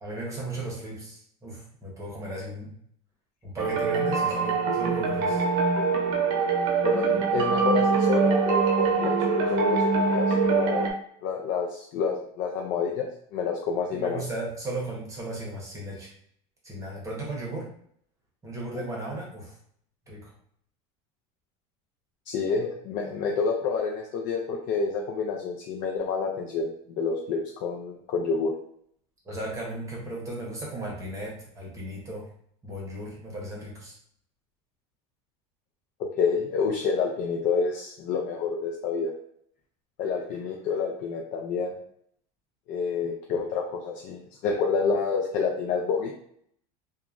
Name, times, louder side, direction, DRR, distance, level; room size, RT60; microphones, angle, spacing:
voice 1, 0.0-2.7 3.4-5.4 13.9-16.1 16.6-17.7 18.4-19.5 20.1-20.3 29.2-32.3 32.6-33.9, right 1 dB, 15° right, -4 dB, 1.0 m, -36 dB
sound 1, 3.6-10.9, right 4 dB, 80° right, 0.6 m, -24 dB
voice 2, 6.8-10.9 11.2-14.2 18.7-18.8 22.3-28.5 36.0-39.1 40.0-41.8 42.7-46.1, left 5 dB, 50° left, 0 dB, 0.4 m, -28 dB
2.8 x 2.3 x 2.4 m, 0.67 s
cardioid pair, 140°, 18 cm